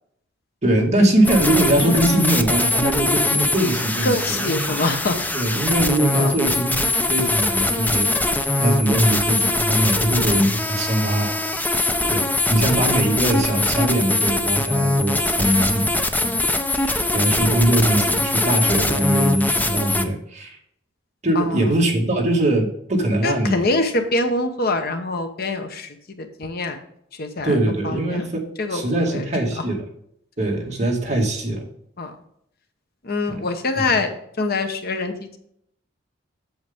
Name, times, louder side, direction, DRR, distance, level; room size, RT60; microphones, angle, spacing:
voice 1, 0.6-4.7 5.3-8.1 8.6-11.3 12.1-15.9 16.2-16.3 17.1-20.6 21.2-23.7 27.4-29.8 30.4-31.6 33.3-33.4 33.8-34.0, right 1 dB, 40° right, -1 dB, 2.1 m, -21 dB
sound 1, 1.2-20.0, left 2 dB, 10° left, 0.6 m, -22 dB
voice 2, 4.0-5.2 6.1-6.3 10.3-10.4 12.6-12.8 15.5-15.7 16.8-17.4 21.3-21.6 23.2-26.8 27.2-27.6 27.8-28.2 28.6-28.8 29.1-29.2 32.0-32.1 33.0-35.4, left 2 dB, 55° left, 6 dB, 1.0 m, -25 dB
8.0 x 7.4 x 3.6 m, 0.70 s
head